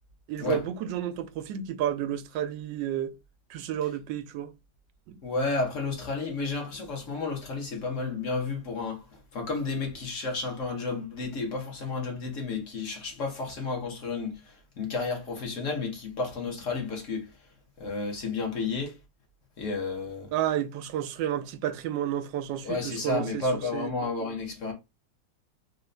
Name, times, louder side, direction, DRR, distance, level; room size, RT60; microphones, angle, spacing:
voice 1, 0.3-3.2 3.5-4.5 5.1-5.2 20.3-23.9, right 10 dB, 80° right, 1.3 m, -31 dB
voice 2, 5.2-9.0 9.3-14.3 14.8-17.2 17.8-19.0 19.6-20.3 22.6-24.7, left 3 dB, 50° left, 1.3 m, -31 dB
4.0 x 2.5 x 3.2 m
omnidirectional pair, 1.9 m